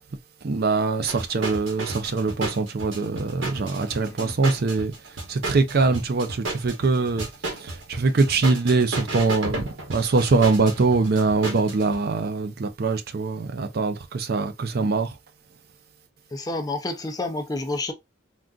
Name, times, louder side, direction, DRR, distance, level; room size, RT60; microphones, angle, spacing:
voice 1, 0.4-4.9 5.3-7.3 7.6-9.6 9.9-15.1, right 3 dB, 50° right, 0.5 m, -23 dB
sound 1, 1.1-11.9, right 2 dB, 70° right, 1.2 m, -33 dB
voice 2, 4.0-4.4 16.3-17.9, left 2 dB, 20° left, 0.4 m, -29 dB
3.7 x 2.3 x 2.3 m
head